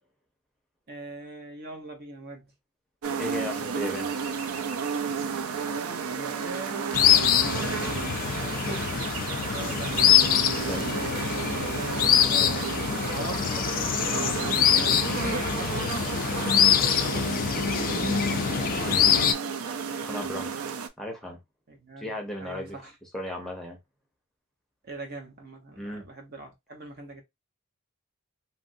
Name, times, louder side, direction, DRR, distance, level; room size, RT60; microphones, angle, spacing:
voice 1, 0.9-2.5 5.6-9.0 9.4-10.2 12.3-17.2 17.8-19.2 21.7-22.1 22.4-22.9 24.8-27.2, right 3 dB, 50° right, 0.9 m, -41 dB
sound 1, 3.0-20.9, right 6 dB, 90° right, 0.5 m, -32 dB
voice 2, 3.2-4.1 10.6-10.9 20.0-20.5 21.0-21.4 22.0-22.8 23.1-23.8 25.8-26.1, left 1 dB, ahead, 0.7 m, -35 dB
sound 2, 6.9-19.3, left 9 dB, 40° left, 0.3 m, -24 dB
3.0 x 2.6 x 2.5 m
head